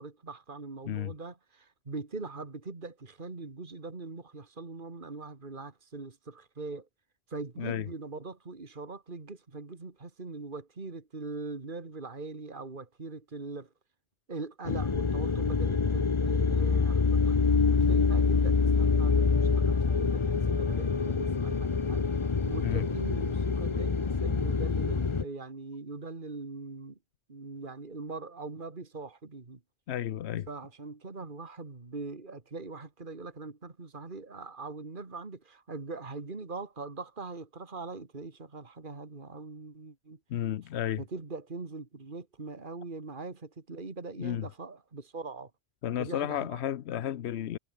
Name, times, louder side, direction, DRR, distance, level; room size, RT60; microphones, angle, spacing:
voice 1, 0.0-6.9 7.3-13.7 14.3-22.1 22.4-27.0 27.3-29.6 30.5-40.2 41.0-45.5 46.0-46.6, right 3 dB, 50° right, 2.4 m, -42 dB
voice 2, 7.6-7.9 22.6-22.9 29.9-30.5 40.3-41.0 44.2-44.5 45.8-47.6, left 11 dB, 80° left, 1.0 m, -32 dB
sound 1, 14.6-25.2, left 4 dB, 30° left, 0.8 m, -26 dB
omnidirectional pair, 1.1 m